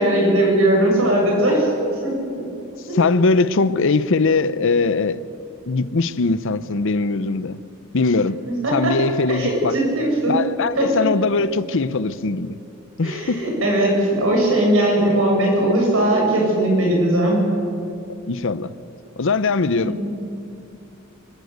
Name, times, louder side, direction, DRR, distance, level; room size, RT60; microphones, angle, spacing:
voice 1, 0.0-1.7 2.0-2.4 2.9-3.0 8.6-8.9 9.3-10.4 10.8-11.1 13.0-17.4 19.8-20.1, right 1 dB, 70° right, 7.4 m, -19 dB
voice 2, 2.9-5.2 5.7-7.6 7.9-8.4 8.7-9.8 10.3-12.6 13.0-13.4 18.3-18.7 19.2-20.0, left 3 dB, 65° left, 0.7 m, -20 dB
25.5 x 14.5 x 8.2 m
head